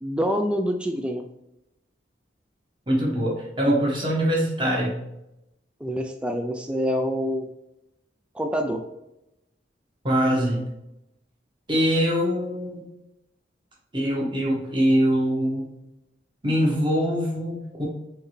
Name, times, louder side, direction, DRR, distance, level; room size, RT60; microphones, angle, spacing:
voice 1, 0.0-1.2 5.8-7.4 8.4-8.8, equal, 5° right, 4 dB, 0.3 m, -26 dB
voice 2, 2.9-5.0 10.0-10.7 11.7-12.8 13.9-15.7 16.4-17.9, equal, 25° right, -3 dB, 1.2 m, -23 dB
4.6 x 3.3 x 3.2 m, 0.87 s
head